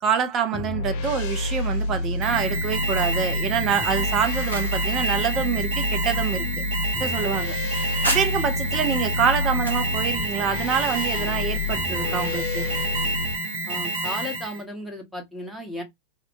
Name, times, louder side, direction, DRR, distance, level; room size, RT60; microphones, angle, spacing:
voice 1, 0.0-6.4 7.0-7.6 8.1-12.7, right 7 dB, 30° right, 0.4 m, -26 dB
sound 1, 0.5-13.3, left 2 dB, 45° left, 0.5 m, -28 dB
Alarm, 2.2-14.6, right 2 dB, 50° right, 0.7 m, -29 dB
sound 2, 4.1-8.7 9.1-9.9, equal, 85° right, 0.8 m, -35 dB
voice 2, 13.7-15.8, left 1 dB, 5° right, 0.8 m, -34 dB
2.5 x 2.0 x 2.5 m
figure-of-eight pair, 90°, 0 cm